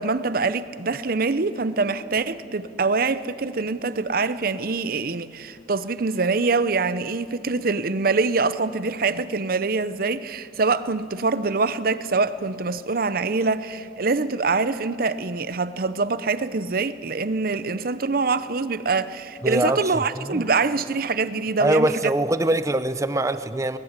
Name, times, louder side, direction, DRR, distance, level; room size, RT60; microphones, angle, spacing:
voice 1, 0.0-22.1, right 4 dB, 55° right, 0.8 m, -24 dB
voice 2, 19.4-20.5 21.6-23.8, right 1 dB, 20° right, 0.7 m, -23 dB
21.5 x 19.0 x 8.2 m
head